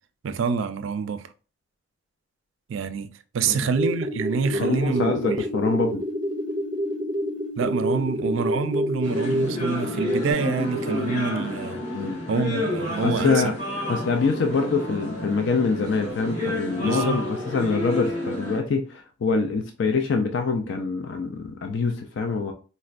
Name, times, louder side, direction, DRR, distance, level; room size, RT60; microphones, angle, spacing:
voice 1, 0.2-1.3 2.7-5.4 7.6-11.8 12.3-13.4 16.8-17.2, right 5 dB, 80° right, 0.4 m, -27 dB
sound 1, 3.8-10.3, equal, 20° right, 0.5 m, -28 dB
voice 2, 4.5-6.0 11.9-12.2 13.0-22.5, left 4 dB, 70° left, 0.4 m, -25 dB
sound 2, 9.0-18.6, left 1 dB, 35° left, 1.3 m, -30 dB
4.2 x 2.1 x 2.4 m
head